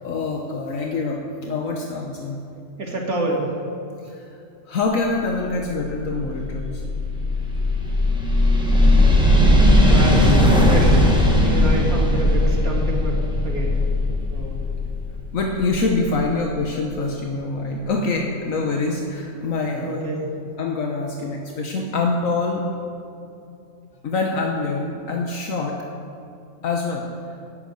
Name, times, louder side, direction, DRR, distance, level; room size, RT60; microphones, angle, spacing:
voice 1, 0.0-2.4 4.0-4.4 4.7-6.8 15.3-20.0 20.6-22.7 24.0-25.8 26.6-27.1, left 3 dB, 70° left, 1 dB, 1.4 m, -25 dB
voice 2, 2.8-3.5 9.8-11.2 11.4-13.2 13.4-13.8 14.3-14.5 19.8-20.2, right 1 dB, 80° right, -2 dB, 2.7 m, -27 dB
sound 1, 5.6-16.4, left 1 dB, 5° right, 1.6 m, -18 dB
11.0 x 8.4 x 9.1 m, 2.7 s
omnidirectional pair, 1.5 m